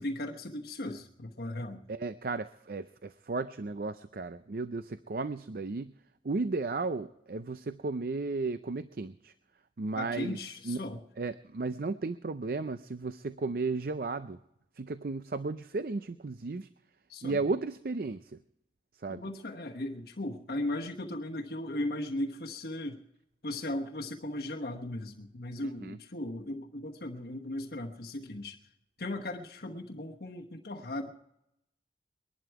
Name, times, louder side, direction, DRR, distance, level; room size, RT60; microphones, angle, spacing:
voice 1, 0.0-1.8 9.9-11.0 17.1-17.4 19.1-23.0 23.4-28.6 29.0-31.1, left 1 dB, 60° left, 1 dB, 1.1 m, -37 dB
voice 2, 1.9-5.9 6.2-9.3 9.8-10.4 10.6-10.9 11.2-14.4 14.8-16.7 17.2-18.4 19.0-19.2 25.6-26.0, right 3 dB, 55° right, 12 dB, 0.5 m, -34 dB
21.5 x 11.5 x 4.7 m, 0.82 s
head